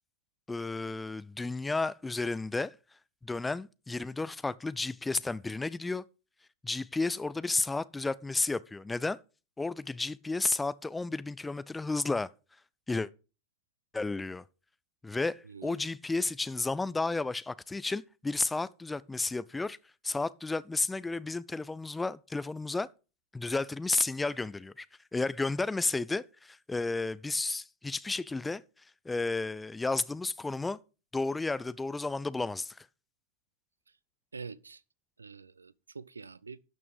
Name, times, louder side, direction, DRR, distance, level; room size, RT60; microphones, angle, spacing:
voice 1, 0.5-2.8 3.2-6.0 6.6-9.2 9.6-12.3 12.9-13.1 13.9-14.4 15.0-19.8 20.0-22.9 23.3-24.9 25.1-28.6 29.0-30.8 31.1-32.9, left 3 dB, 10° left, 0.4 m, -32 dB
voice 2, 15.5-15.8 34.3-34.8 35.2-36.6, right 5 dB, 75° right, 0.4 m, -45 dB
12.0 x 6.1 x 5.2 m
figure-of-eight pair, 90°, 0 cm